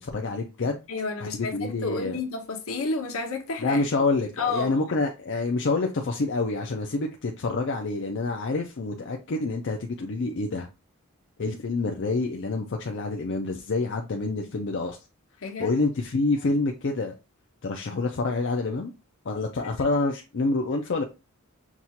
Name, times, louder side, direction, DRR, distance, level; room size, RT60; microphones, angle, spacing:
voice 1, 0.0-0.8 1.3-2.2 3.6-10.7 11.4-15.0 15.6-17.1 17.6-18.9 19.2-21.0, left 3 dB, 55° left, 0.5 m, -27 dB
voice 2, 0.6-3.8 4.4-4.8 15.4-15.7 19.6-19.7, left 3 dB, 70° left, 0.9 m, -31 dB
5.9 x 2.4 x 2.8 m
head